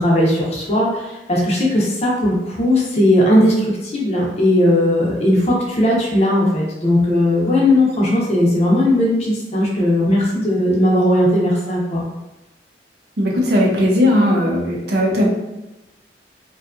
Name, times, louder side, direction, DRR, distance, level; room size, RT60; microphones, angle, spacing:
voice 1, 0.0-12.0, left 1 dB, 35° left, -3 dB, 0.6 m, -17 dB
voice 2, 13.2-15.3, left 1 dB, 65° right, -1 dB, 0.6 m, -17 dB
2.7 x 2.3 x 2.4 m, 0.97 s
head